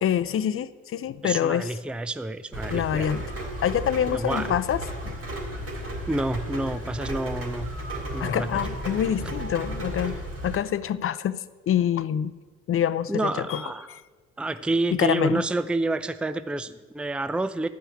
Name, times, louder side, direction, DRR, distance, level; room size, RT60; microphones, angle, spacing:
voice 1, 0.0-1.7 2.7-3.2 3.6-5.2 8.2-10.2 10.4-12.3 12.7-13.6 13.9-14.0 14.9-15.4, left 10 dB, 40° left, 16 dB, 0.6 m, -26 dB
voice 2, 1.2-3.1 4.1-4.6 6.1-7.7 8.1-8.5 13.1-13.9 14.4-17.7, right 2 dB, 5° right, 13 dB, 0.5 m, -28 dB
Rain, 2.5-10.5, equal, 45° right, 3.7 m, -34 dB
12.0 x 5.6 x 8.6 m, 1.4 s
hypercardioid pair, 50°, 32 cm